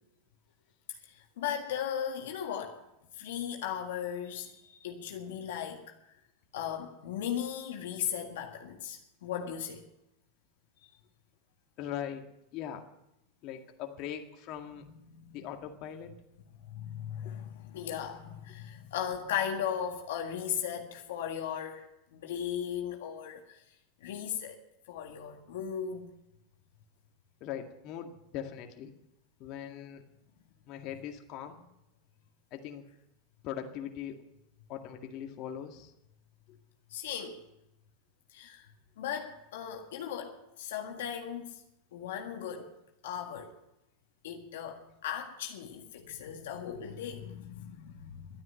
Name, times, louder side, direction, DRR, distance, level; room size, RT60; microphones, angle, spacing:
voice 1, 1.1-2.8 3.1-5.8 6.5-9.8 10.8-10.9 14.8-15.4 16.7-23.6 24.0-24.6 24.9-26.1 36.9-37.4 38.3-38.7 39.0-41.6 41.9-42.7 43.0-43.5 44.2-48.4, left 9 dB, 75° left, 1.8 m, -37 dB
voice 2, 11.8-12.8 13.4-14.9 15.3-16.1 27.4-28.9 29.4-30.0 30.7-31.6 32.5-32.8 33.4-34.2 34.7-35.9, left 9 dB, 50° left, 2.0 m, -40 dB
12.0 x 9.6 x 9.5 m
hypercardioid pair, 105°, 0 cm